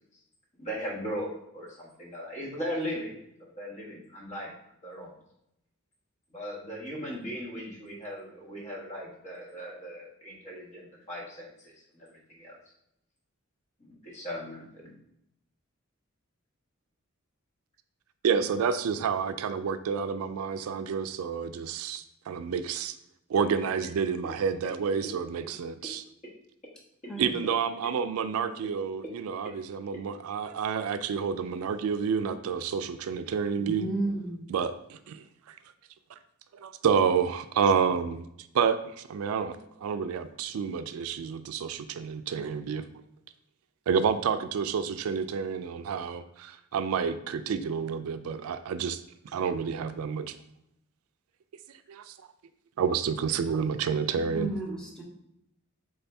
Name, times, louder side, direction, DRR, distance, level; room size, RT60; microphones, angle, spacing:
voice 1, 0.6-4.5 4.8-5.1 6.3-12.6 13.8-14.9 27.2-27.4, equal, 35° left, -3 dB, 1.3 m, -38 dB
voice 2, 18.2-23.0 23.3-26.0 27.2-33.9 34.5-35.6 36.5-42.9 43.9-49.0 49.3-50.4 51.9-52.1 52.8-54.5, right 6 dB, 90° right, 11 dB, 0.3 m, -29 dB
voice 3, 33.6-34.5 54.2-55.0, right 2 dB, 5° left, -2 dB, 0.8 m, -33 dB
4.2 x 3.7 x 3.4 m, 0.78 s
head